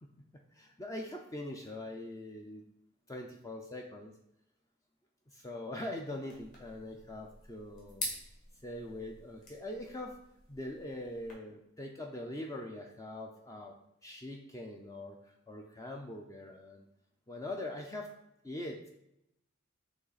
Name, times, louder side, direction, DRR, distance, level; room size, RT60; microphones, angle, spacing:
voice 1, 0.5-2.6 3.1-4.1 5.3-8.0 8.6-10.2 10.5-15.2 15.5-16.9 17.3-18.1 18.4-18.9, left 1 dB, 15° left, 2 dB, 0.4 m, -42 dB
sound 1, 6.3-11.3, left 1 dB, 40° left, 1.8 m, -46 dB
7.9 x 3.1 x 4.0 m, 0.81 s
head